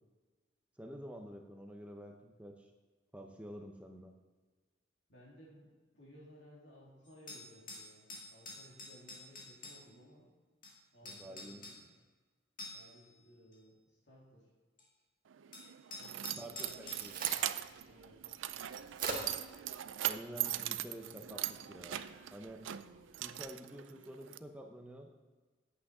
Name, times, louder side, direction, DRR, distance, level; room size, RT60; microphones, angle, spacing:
voice 1, 0.8-2.7 3.1-4.1 11.0-11.8 16.4-17.3 20.0-22.0 22.3-22.7 23.2-25.1, equal, 5° right, 2 dB, 0.7 m, -49 dB
voice 2, 5.1-5.7 5.9-10.3 10.9-11.9 12.7-14.5 16.0-16.5 17.8-18.2, equal, 65° left, -4 dB, 3.3 m, -59 dB
sound 1, 7.0-9.8 10.6-10.7 11.0-11.8 12.6-13.0 13.5-13.6 14.8-14.9 15.5-17.0, left 2 dB, 45° left, 2.3 m, -48 dB
Keys jangling, 15.3-24.4, right 13 dB, 90° right, 0.4 m, -40 dB
Crack, 16.5-23.4, right 3 dB, 50° right, 1.7 m, -47 dB
8.7 x 8.3 x 4.9 m, 1.3 s
head